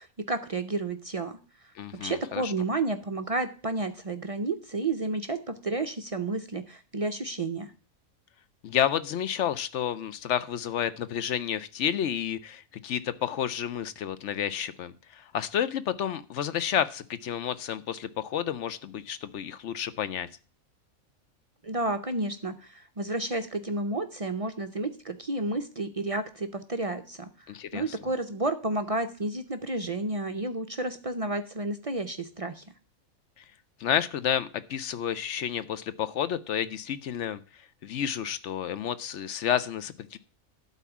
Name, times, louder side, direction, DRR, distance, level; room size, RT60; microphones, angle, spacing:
voice 1, 0.0-1.4 2.0-7.7 21.6-32.6, right 2 dB, 50° right, 8 dB, 0.4 m, -31 dB
voice 2, 1.8-2.5 8.6-20.3 27.5-27.8 33.4-33.5 33.8-37.4 37.8-40.2, left 9 dB, 65° left, 14 dB, 0.8 m, -30 dB
12.0 x 4.2 x 7.1 m, 0.38 s
omnidirectional pair, 1.4 m